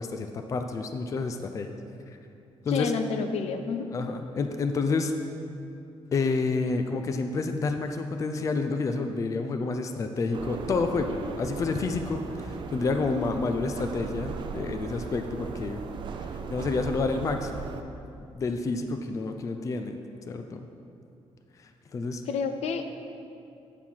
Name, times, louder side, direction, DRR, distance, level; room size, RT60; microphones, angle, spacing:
voice 1, 0.0-1.8 2.1-2.2 2.6-2.9 3.9-5.1 6.1-15.8 16.5-17.7 18.3-20.0 20.3-20.7 21.6-22.2, left 4 dB, 30° left, 6 dB, 0.4 m, -29 dB
voice 2, 2.7-3.8 22.3-22.9, left 5 dB, 75° left, 7 dB, 0.6 m, -29 dB
sound 1, 10.3-17.8, right 5 dB, 50° right, 0.4 m, -37 dB
8.8 x 4.6 x 5.5 m, 2.6 s
cardioid pair, 155°, 11 cm